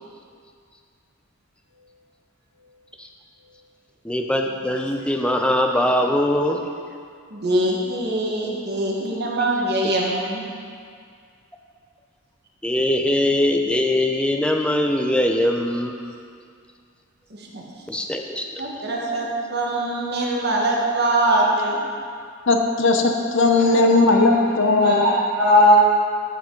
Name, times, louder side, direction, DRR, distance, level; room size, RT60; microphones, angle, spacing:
voice 1, 4.0-6.6 12.6-16.0 17.9-18.4, left 1 dB, 5° left, 2 dB, 0.5 m, -21 dB
voice 2, 7.3-10.4 17.3-17.6 18.6-21.8, right 1 dB, 50° right, -3 dB, 1.4 m, -23 dB
voice 3, 22.5-24.9, left 3 dB, 60° left, 4 dB, 0.8 m, -17 dB
voice 4, 23.6-24.4 24.7-25.7, left 1 dB, 75° right, -9 dB, 2.2 m, -18 dB
14.0 x 5.4 x 3.9 m, 2.2 s
head